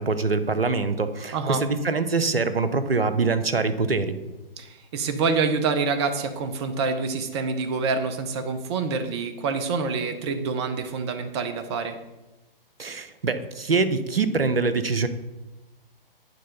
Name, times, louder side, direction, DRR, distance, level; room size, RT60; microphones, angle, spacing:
voice 1, 0.0-4.2 12.8-15.1, right 4 dB, 80° right, 11 dB, 0.8 m, -24 dB
voice 2, 4.6-12.0, right 4 dB, 30° right, 9 dB, 0.8 m, -26 dB
9.4 x 3.7 x 5.5 m, 1.0 s
figure-of-eight pair, 125°, 29 cm